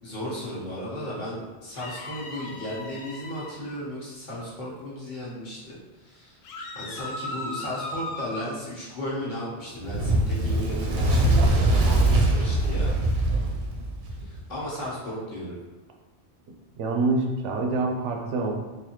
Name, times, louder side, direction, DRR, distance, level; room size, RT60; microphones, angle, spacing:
voice 1, 0.0-6.4 6.7-13.0 14.2-15.6, equal, 45° left, -7 dB, 1.1 m, -35 dB
sound 1, 1.7-3.5 6.4-8.5, left 1 dB, 60° left, 0.6 m, -37 dB
Fire, 9.8-14.4, right 1 dB, 55° right, 0.7 m, -22 dB
voice 2, 16.8-18.5, right 3 dB, 85° right, 2 dB, 0.9 m, -26 dB
3.9 x 2.7 x 2.9 m, 1.2 s
omnidirectional pair, 1.2 m